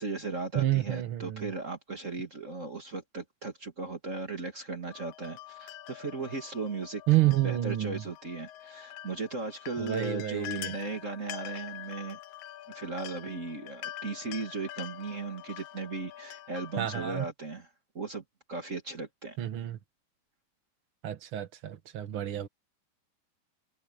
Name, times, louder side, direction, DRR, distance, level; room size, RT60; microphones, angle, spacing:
voice 1, 0.0-7.0 7.4-12.2 12.7-17.7 17.9-18.2 18.5-19.4, right 3 dB, 35° right, 1.4 m, -37 dB
voice 2, 0.5-1.5 7.1-8.0 9.8-10.7 16.8-17.3 19.4-19.8 21.0-22.5, right 14 dB, 80° right, 1.2 m, -29 dB
sound 1, 4.9-17.3, left 13 dB, 80° left, 1.7 m, -45 dB
omnidirectional pair, 4.4 m